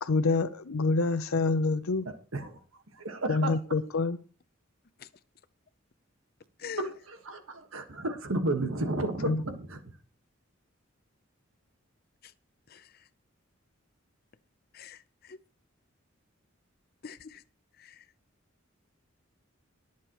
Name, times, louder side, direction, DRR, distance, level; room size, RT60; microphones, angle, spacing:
voice 1, 0.0-2.1 3.3-4.2 9.2-9.4, left 3 dB, 90° left, 0.6 m, -27 dB
voice 2, 2.0-2.6 3.0-3.5 6.8-6.9 7.3-9.8, right 2 dB, 80° right, 1.5 m, -32 dB
voice 3, 6.6-6.9 12.2-12.3 12.7-12.9 14.7-15.4 17.0-17.4 17.8-18.0, left 3 dB, 45° left, 0.7 m, -42 dB
21.0 x 7.4 x 3.0 m
head